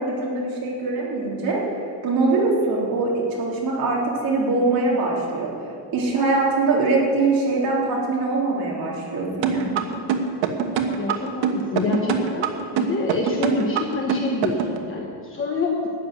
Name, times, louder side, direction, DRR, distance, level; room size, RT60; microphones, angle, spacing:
voice 1, 0.0-1.6 2.0-9.8, right 3 dB, 50° right, -4 dB, 3.6 m, -23 dB
sound 1, 9.4-14.8, right 8 dB, 80° right, 1.3 m, -23 dB
voice 2, 11.0-12.4 12.8-15.9, left 3 dB, 30° left, -1 dB, 1.2 m, -26 dB
13.0 x 7.8 x 9.2 m, 2.4 s
cardioid pair, 165°, 44 cm